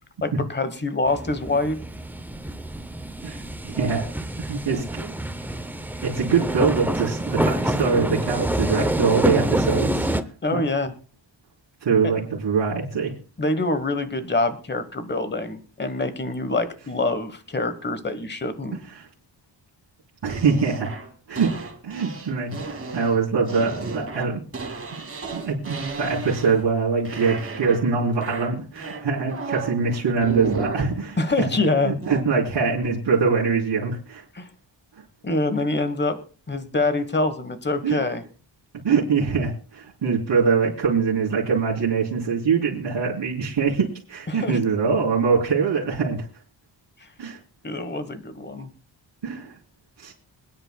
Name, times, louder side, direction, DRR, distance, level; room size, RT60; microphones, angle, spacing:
voice 1, 0.2-1.8 4.7-4.9 10.4-10.9 12.0-12.1 13.4-18.8 31.2-32.0 34.3-34.5 35.2-36.2 36.5-38.2 44.3-44.6 47.6-48.7, left 2 dB, 25° left, 12 dB, 1.1 m, -25 dB
sound 1, 1.1-10.2, right 1 dB, 5° right, 0.5 m, -26 dB
voice 2, 3.6-4.1 4.4-5.1 6.0-10.1 10.5-10.6 11.8-13.1 19.0-19.1 20.2-20.9 21.3-24.4 25.3-31.5 31.8-34.2 37.8-38.0 38.8-46.2 47.2-47.4 49.2-49.5 50.0-50.1, right 5 dB, 70° right, -8 dB, 3.6 m, -23 dB
sound 2, 20.3-26.8 27.0-27.9 28.2-29.8 30.2-30.9 32.0-32.2, right 4 dB, 30° right, 2.1 m, -34 dB
26.0 x 10.0 x 2.2 m, 0.37 s
wide cardioid pair, 170°, 45 cm